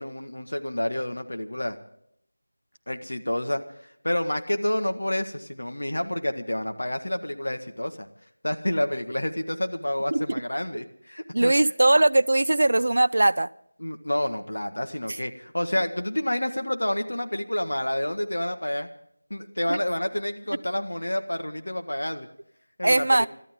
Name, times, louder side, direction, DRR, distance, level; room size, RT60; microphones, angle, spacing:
voice 1, 0.0-1.8 2.9-8.1 8.4-11.5 13.8-18.9 19.3-22.3 22.8-23.3, left 1 dB, 80° left, 6 dB, 1.7 m, -29 dB
voice 2, 10.1-10.4 11.3-13.5 19.7-19.8 22.8-23.3, right 2 dB, 55° right, 15 dB, 0.5 m, -20 dB
25.5 x 13.0 x 3.8 m, 0.70 s
figure-of-eight pair, 175°, 0 cm